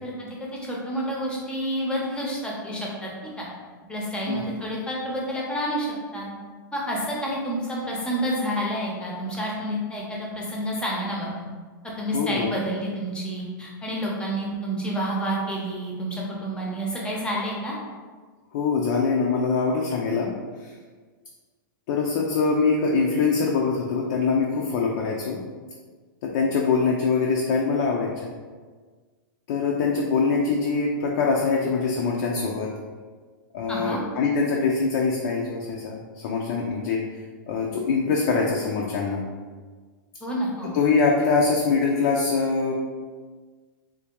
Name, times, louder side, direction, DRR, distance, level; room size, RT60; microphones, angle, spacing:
voice 1, 0.0-3.5 3.9-5.9 6.1-6.3 6.7-11.4 12.0-17.7 33.7-34.0 40.2-40.7, equal, 10° left, -4 dB, 0.7 m, -29 dB
voice 2, 12.1-12.5 18.5-20.3 20.6-20.7 21.9-25.4 26.2-28.3 29.5-32.7 33.5-37.0 37.5-39.2 40.6-42.7, left 4 dB, 55° left, -1 dB, 0.5 m, -23 dB
3.6 x 2.7 x 2.9 m, 1.5 s
hypercardioid pair, 140°, 11 cm